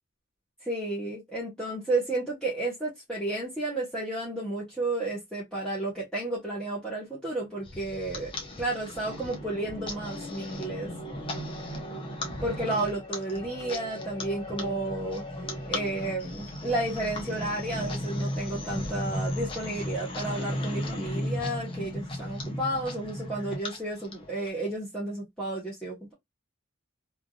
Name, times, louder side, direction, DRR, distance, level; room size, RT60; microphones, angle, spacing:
voice 1, 0.6-8.3 8.6-10.9 12.4-15.2 15.6-26.1, right 2 dB, 5° left, 1.0 m, -32 dB
sound 1, 7.6-24.5, left 1 dB, 25° left, 0.8 m, -35 dB
3.3 x 2.6 x 2.3 m
head